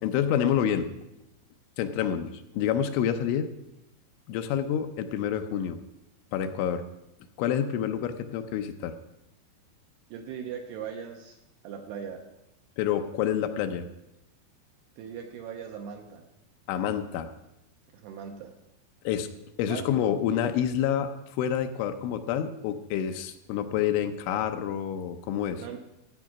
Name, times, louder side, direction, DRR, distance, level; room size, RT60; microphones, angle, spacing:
voice 1, 0.0-0.9 1.8-3.5 4.3-5.8 6.3-6.8 7.4-8.9 12.8-13.9 16.7-17.3 19.0-19.3 19.6-21.1 21.4-25.6, left 9 dB, 80° left, 7 dB, 3.1 m, -28 dB
voice 2, 10.1-11.4 11.6-12.2 15.0-16.2 17.9-18.5 19.7-19.9 25.6-25.8, right 7 dB, 75° right, 3 dB, 2.6 m, -39 dB
14.0 x 9.1 x 5.9 m, 0.89 s
omnidirectional pair, 5.6 m